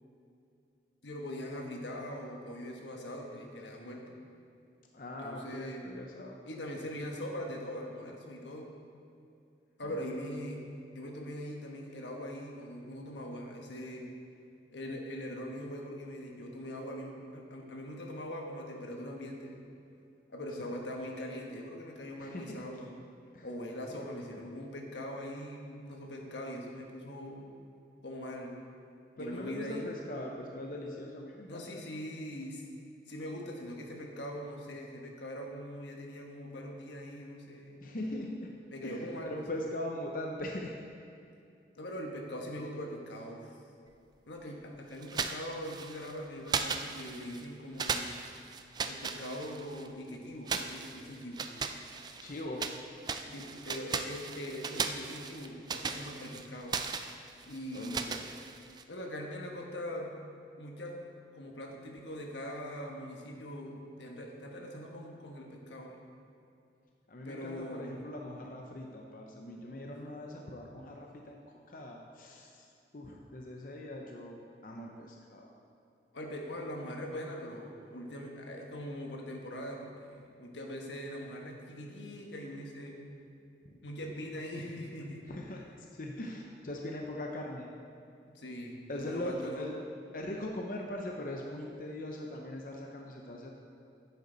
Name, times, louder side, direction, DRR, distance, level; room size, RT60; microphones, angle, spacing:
voice 1, 1.0-4.2 5.2-5.9 6.4-8.7 9.8-10.6 10.9-14.1 14.7-19.7 20.3-22.9 23.4-27.5 28.0-28.6 29.1-29.9 31.5-32.6 33.1-37.8 38.7-39.4 41.8-43.6 44.3-48.1 48.9-51.6 53.3-56.8 57.5-58.3 58.9-60.2 60.6-66.0 67.2-68.0 69.7-69.9 76.1-83.0 83.8-85.3 88.3-89.7, equal, 85° left, 1 dB, 1.3 m, -42 dB
voice 2, 4.9-6.4 9.8-9.9 20.6-20.7 22.2-22.6 23.3-23.5 23.9-24.0 24.3-24.4 29.2-31.8 37.8-40.7 52.2-52.7 53.3-53.4 57.7-58.3 67.1-71.4 71.7-72.7 72.9-75.5 83.6-83.7 84.1-84.2 85.3-85.7 86.0-87.7 88.9-89.7 90.1-93.5, left 1 dB, 50° left, 0 dB, 0.7 m, -41 dB
sound 1, 45.0-46.1 46.5-47.4 47.8-49.9 50.5-52.8 53.0-58.8, right 5 dB, 25° right, 0.3 m, -37 dB
10.5 x 8.4 x 4.0 m, 2.5 s
head